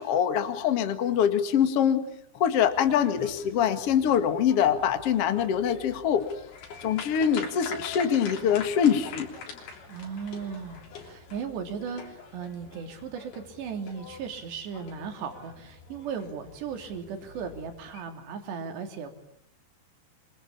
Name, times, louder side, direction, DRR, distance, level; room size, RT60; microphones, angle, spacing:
voice 1, 0.0-2.1 2.3-6.2 6.8-9.3, left 8 dB, 45° left, 8 dB, 2.2 m, -24 dB
sound 1, 2.6-18.0, left 5 dB, 65° left, 5.2 m, -44 dB
voice 2, 9.9-19.1, right 6 dB, 75° right, 5 dB, 5.1 m, -37 dB
26.5 x 25.5 x 8.6 m, 0.73 s
omnidirectional pair, 5.1 m